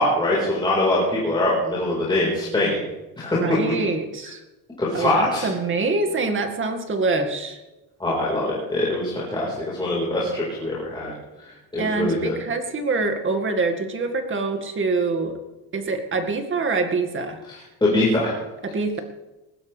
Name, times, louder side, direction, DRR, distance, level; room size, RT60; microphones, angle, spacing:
voice 1, 0.0-2.8 3.2-3.4 4.8-5.5 8.0-11.1 11.7-12.3 17.8-18.3, left 1 dB, 10° left, -6 dB, 4.7 m, -23 dB
voice 2, 3.3-4.4 4.9-7.6 11.8-15.4 15.7-17.4 18.6-19.0, right 3 dB, 30° right, 6 dB, 2.1 m, -25 dB
20.5 x 16.0 x 3.5 m, 1.1 s
cardioid pair, 155°, 38 cm